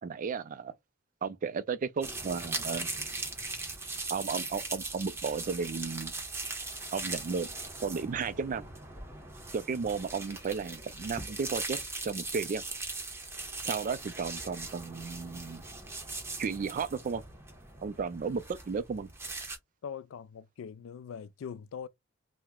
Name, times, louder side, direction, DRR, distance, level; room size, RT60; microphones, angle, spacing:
voice 1, 0.0-0.7 1.2-2.9 4.1-6.1 6.9-7.5 7.8-8.7 9.5-12.6 13.6-15.6 16.4-17.2 17.8-19.1, right 5 dB, 40° right, 0.3 m, -34 dB
sound 1, 2.0-19.6, right 3 dB, 15° right, 0.7 m, -40 dB
voice 2, 19.8-21.9, left 7 dB, 80° left, 0.3 m, -42 dB
2.8 x 2.0 x 3.5 m
head